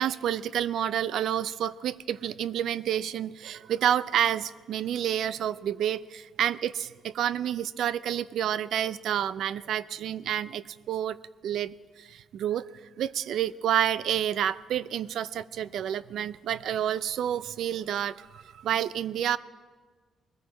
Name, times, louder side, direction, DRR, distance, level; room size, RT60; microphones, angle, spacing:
voice 1, 0.0-11.2 11.4-12.6 13.0-19.4, right 10 dB, 65° right, 17 dB, 0.4 m, -29 dB
21.0 x 14.0 x 4.1 m, 1.4 s
cardioid pair, 170°, 0 cm